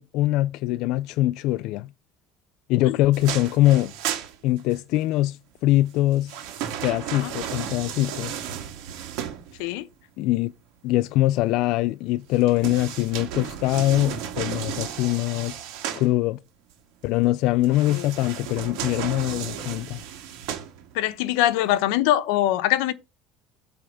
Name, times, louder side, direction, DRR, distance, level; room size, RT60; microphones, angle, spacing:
voice 1, 0.0-1.9 2.7-3.9 4.4-6.4 6.8-8.4 10.2-10.5 10.8-15.6 16.0-16.4 17.0-20.0, left 16 dB, 55° left, 0.3 m, -23 dB
sound 1, 3.1-5.0 5.9-9.8 12.3-16.1 17.6-21.1 21.6-21.7, right 9 dB, 70° right, 1.7 m, -34 dB
voice 2, 20.9-22.9, left 13 dB, 85° left, 0.8 m, -23 dB
8.6 x 3.4 x 6.3 m
cardioid pair, 170°, 0 cm